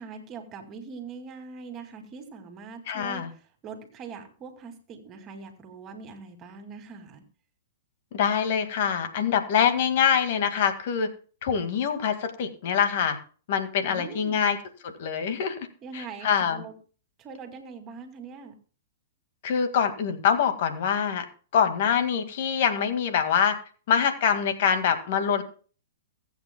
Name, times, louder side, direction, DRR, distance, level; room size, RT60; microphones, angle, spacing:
voice 1, 0.0-7.2 13.9-14.5 15.8-16.7 17.2-18.5, right 5 dB, 30° right, 6 dB, 2.3 m, -42 dB
voice 2, 2.9-3.3 8.1-11.1 11.4-13.2 13.5-14.6 14.8-15.6 15.9-16.6 19.4-21.2 21.5-23.6 23.9-25.4, left 7 dB, 55° left, 8 dB, 2.0 m, -24 dB
22.5 x 8.4 x 2.3 m, 0.39 s
hypercardioid pair, 125°, 0 cm